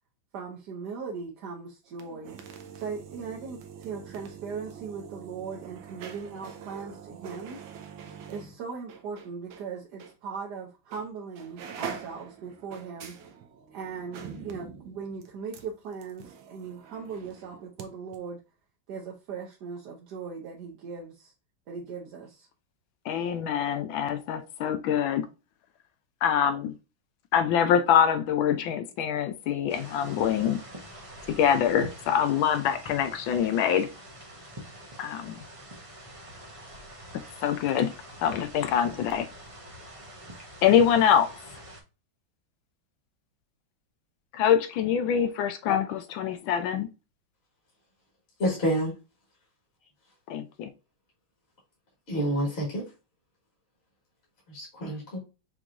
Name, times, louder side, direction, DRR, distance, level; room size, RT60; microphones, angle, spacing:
voice 1, 0.3-2.4 2.7-7.6 8.3-13.2 13.7-18.4 18.9-21.3 21.7-22.5, right 5 dB, 65° right, 1.2 m, -39 dB
sound 1, 1.9-9.7 10.0-10.1 10.9-11.1 11.3-17.9 18.1-18.2, right 7 dB, 80° right, 1.5 m, -44 dB
voice 2, 23.1-25.2 26.2-26.7 27.3-30.6 31.3-33.9 35.0-35.4 37.4-37.9 38.2-39.3 40.6-41.4 44.3-46.9 50.3-50.7, left 8 dB, 80° left, 1.3 m, -24 dB
sound 2, 29.7-41.8, right 1 dB, 40° right, 0.5 m, -45 dB
voice 3, 48.4-48.9 52.1-52.8 54.5-55.2, equal, 35° left, 1.7 m, -28 dB
5.9 x 3.0 x 2.5 m
omnidirectional pair, 2.2 m